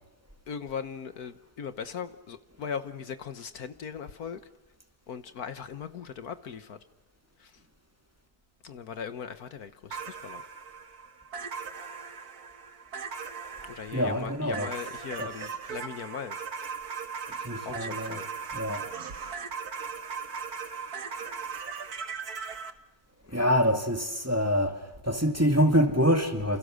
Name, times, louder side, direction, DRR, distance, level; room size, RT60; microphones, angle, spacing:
voice 1, 0.5-4.4 5.1-6.8 7.4-7.6 8.6-10.4 13.6-16.4 17.3-18.3 23.3-23.4, left 7 dB, 65° left, 11 dB, 1.6 m, -39 dB
sound 1, 9.9-22.7, right 5 dB, 65° right, 2.1 m, -38 dB
voice 2, 13.9-14.7 15.2-15.3 17.4-18.2 18.5-18.9 23.3-26.6, equal, 10° right, 5 dB, 2.4 m, -25 dB
29.0 x 28.0 x 6.4 m, 1.0 s
omnidirectional pair, 1.7 m